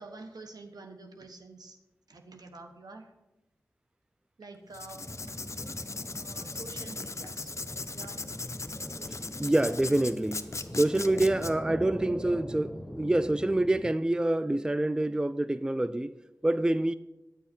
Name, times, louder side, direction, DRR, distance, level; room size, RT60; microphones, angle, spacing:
voice 1, 0.0-1.8 2.1-3.1 4.4-5.1 6.1-7.5 7.9-8.2, right 3 dB, 80° right, 1.1 m, -47 dB
Writing, 4.7-11.5, left 3 dB, 45° left, 0.6 m, -39 dB
sound 1, 5.0-13.9, equal, 10° left, 0.9 m, -42 dB
voice 2, 9.4-16.1 16.4-16.9, right 1 dB, 10° right, 0.3 m, -26 dB
9.4 x 8.9 x 4.4 m
cardioid pair, 40°, 7 cm